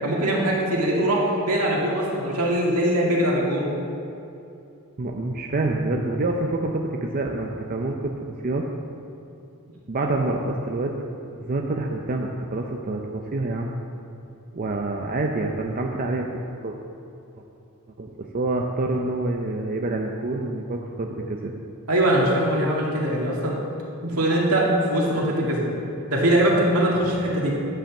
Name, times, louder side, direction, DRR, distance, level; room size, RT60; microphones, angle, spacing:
voice 1, 0.0-3.6 21.9-23.6 24.0-25.7 26.1-27.5, right 1 dB, 75° right, -3 dB, 2.2 m, -22 dB
voice 2, 5.0-8.6 9.9-10.9 11.4-13.7 14.5-16.3 16.6-16.7 18.0-18.1 18.3-21.5, right 2 dB, 40° right, 1 dB, 0.6 m, -27 dB
10.5 x 5.6 x 7.2 m, 2.7 s
head